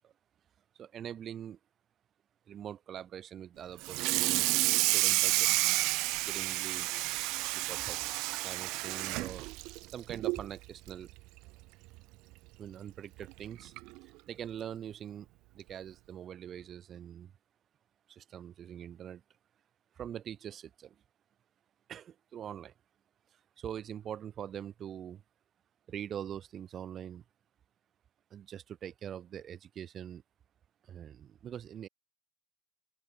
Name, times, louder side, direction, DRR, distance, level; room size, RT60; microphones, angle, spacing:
voice 1, 0.7-1.6 2.5-5.7 6.3-11.1 12.6-13.7 14.0-15.3 15.5-17.3 18.1-19.2 19.9-21.0 21.9-22.7 23.3-25.2 25.9-27.2 28.3-30.2 30.8-31.9, right 9 dB, 40° right, 2.3 m, -44 dB
Water tap faucet / Sink (filling or washing), 3.8-10.5 10.9-11.1 11.5-11.6 12.0-12.1 13.2-13.3 13.8-14.0, right 23 dB, 55° right, 0.5 m, -30 dB
open air
figure-of-eight pair, 60°, 0 cm